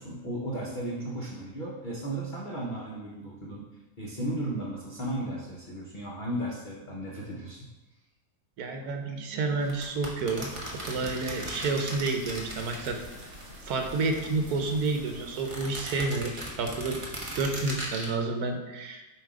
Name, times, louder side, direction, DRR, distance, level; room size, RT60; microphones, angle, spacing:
voice 1, 0.0-3.7 4.0-7.7, right 1 dB, 40° left, -4 dB, 0.8 m, -35 dB
voice 2, 8.6-10.5 10.8-13.0 13.7-17.0 17.4-19.0, right 3 dB, 80° right, 4 dB, 1.3 m, -30 dB
sound 1, 9.6-13.4 13.7-14.8 15.3-18.1, right 1 dB, 25° right, 0.8 m, -38 dB
sound 2, 10.4-15.5, left 1 dB, 50° right, 1.6 m, -47 dB
7.3 x 2.9 x 4.8 m, 1.1 s
omnidirectional pair, 1.6 m